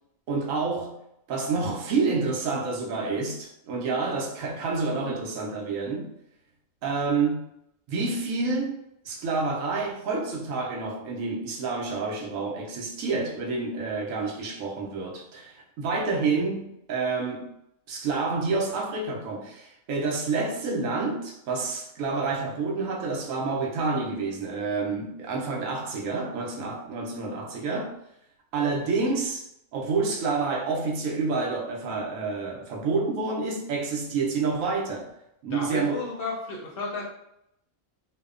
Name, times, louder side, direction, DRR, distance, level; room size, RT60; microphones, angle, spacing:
voice 1, 0.3-1.0 1.3-6.1 6.8-7.5 7.9-8.7 9.0-17.5 17.9-27.9 28.5-29.5 29.7-35.1 35.4-36.0, right 4 dB, 75° right, 0.9 m, -28 dB
voice 2, 35.5-37.1, left 3 dB, 60° left, 0.6 m, -33 dB
2.7 x 2.1 x 2.3 m
omnidirectional pair, 1.4 m